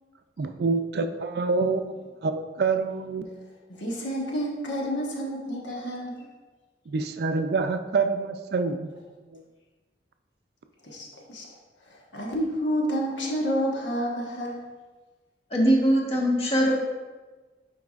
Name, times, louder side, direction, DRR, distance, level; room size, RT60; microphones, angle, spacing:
voice 1, 0.4-2.0 2.2-3.3 6.9-8.9 9.3-9.4, right 4 dB, 60° right, 8 dB, 0.4 m, -26 dB
voice 2, 3.7-6.2 10.9-11.5 12.1-14.5, equal, 80° left, -2 dB, 1.2 m, -29 dB
voice 3, 15.5-16.7, equal, 35° left, -2 dB, 1.2 m, -21 dB
9.5 x 4.7 x 2.4 m, 1.3 s
head